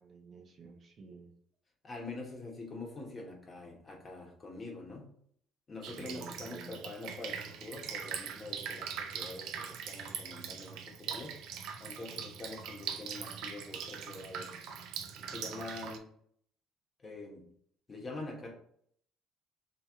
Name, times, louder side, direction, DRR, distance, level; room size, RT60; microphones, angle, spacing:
voice 1, 0.0-1.3 6.0-6.8, right 4 dB, 45° right, 2 dB, 0.8 m, -51 dB
voice 2, 1.8-5.1 5.7-11.4 11.8-14.5 15.1-16.1 17.0-17.5 17.9-18.5, left 2 dB, 30° left, 0 dB, 1.1 m, -45 dB
Drip, 5.8-16.0, right 7 dB, 75° right, 0.4 m, -42 dB
3.0 x 3.0 x 3.5 m, 0.64 s
cardioid pair, 100°, 0 cm